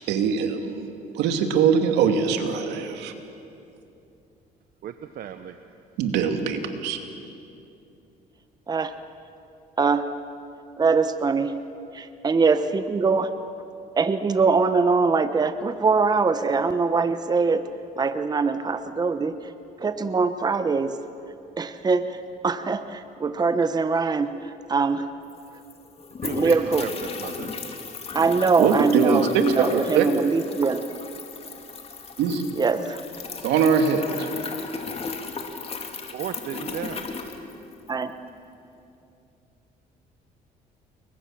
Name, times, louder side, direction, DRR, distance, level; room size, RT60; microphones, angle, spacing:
voice 1, 0.1-0.9 1.1-3.1 6.0-7.0 28.6-29.4 29.7-30.1 32.2-32.5 33.4-34.3, right 6 dB, 85° right, 6 dB, 2.6 m, -22 dB
voice 2, 4.8-5.6 26.2-26.9 27.2-27.5 36.1-37.0, right 9 dB, 60° right, 8 dB, 1.1 m, -34 dB
voice 3, 9.8-10.1 10.8-11.6 11.9-13.3 14.0-17.7 18.0-19.5 19.8-21.0 21.6-25.1 26.3-26.9 28.1-30.8 32.6-33.0 37.9-38.2, right 4 dB, 25° right, 10 dB, 1.0 m, -23 dB
sound 1, 25.0-25.1 25.2-38.0, left 4 dB, 35° left, 2.8 m, -36 dB
29.5 x 22.5 x 7.6 m, 2.7 s
cardioid pair, 110°, 17 cm